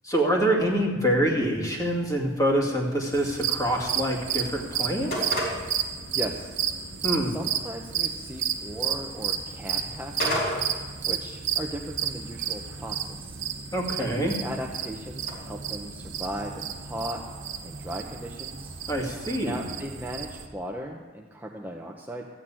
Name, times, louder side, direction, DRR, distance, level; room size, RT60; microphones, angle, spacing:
voice 1, 0.0-5.3 7.0-7.3 13.7-14.3 18.9-19.6, right 1 dB, 20° left, -1 dB, 2.1 m, -25 dB
sound 1, 1.6-15.3, equal, 55° left, 4.4 m, -38 dB
sound 2, 3.1-20.4, right 8 dB, 75° right, 1.2 m, -32 dB
voice 2, 6.1-6.6 7.2-13.4 14.0-17.2 17.6-18.7 19.4-22.3, right 1 dB, 10° right, -1 dB, 0.8 m, -37 dB
14.0 x 6.6 x 8.9 m, 1.4 s
head